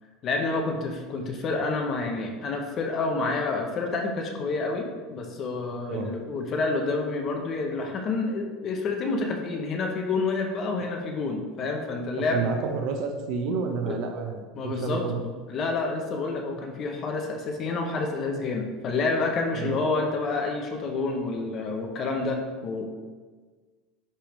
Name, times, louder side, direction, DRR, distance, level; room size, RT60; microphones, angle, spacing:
voice 1, 0.2-12.4 13.9-14.0 14.5-22.9, left 3 dB, 25° left, 3 dB, 0.6 m, -28 dB
voice 2, 12.3-15.2 19.5-19.7, right 5 dB, 45° right, 5 dB, 0.6 m, -30 dB
9.7 x 3.5 x 3.0 m, 1.4 s
cardioid pair, 180°, 0 cm